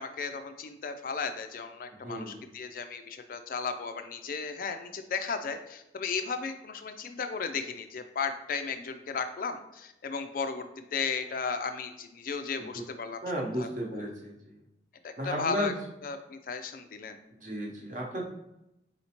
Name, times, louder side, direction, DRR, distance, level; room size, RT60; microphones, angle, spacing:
voice 1, 0.0-13.2 13.6-14.0 15.0-15.7 16.0-17.2, left 5 dB, 50° left, 7 dB, 0.4 m, -35 dB
voice 2, 1.9-2.4 12.6-12.8 13.2-14.6 15.2-15.8 17.4-18.3, equal, 45° right, -1 dB, 0.8 m, -34 dB
4.2 x 4.1 x 2.9 m, 0.87 s
head